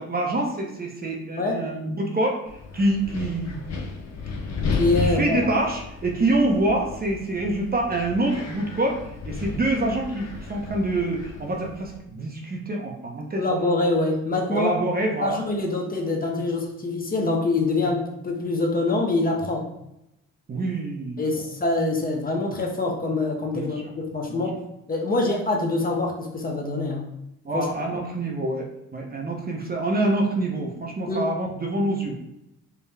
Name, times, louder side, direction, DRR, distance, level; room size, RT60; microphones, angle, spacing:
voice 1, 0.0-3.6 5.0-13.4 14.5-15.4 20.5-21.2 23.5-23.9 24.3-24.4 27.4-32.2, right 2 dB, 30° right, 1 dB, 0.7 m, -26 dB
Wind, 2.5-12.0, left 4 dB, 60° left, 0.7 m, -33 dB
voice 2, 4.7-5.4 13.4-14.8 15.2-19.7 21.2-24.6 24.9-27.1 27.5-27.7 31.1-31.2, left 2 dB, 30° left, 1 dB, 0.8 m, -25 dB
4.6 x 2.2 x 3.3 m, 0.83 s
cardioid pair, 90°, 30 cm